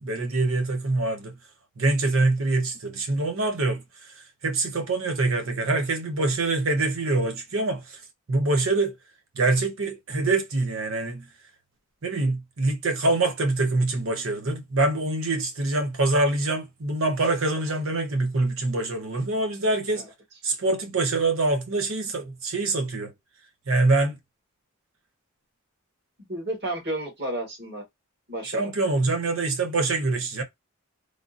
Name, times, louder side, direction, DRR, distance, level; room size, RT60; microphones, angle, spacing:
voice 1, 0.0-1.3 1.8-3.8 4.4-8.0 8.3-8.9 9.3-11.2 12.0-20.0 20.4-23.1 23.7-24.2 28.5-30.4, right 2 dB, 70° right, 0.8 m, -25 dB
voice 2, 26.3-27.8 28.3-28.7, right 1 dB, 50° right, 1.9 m, -32 dB
3.4 x 2.5 x 2.5 m
head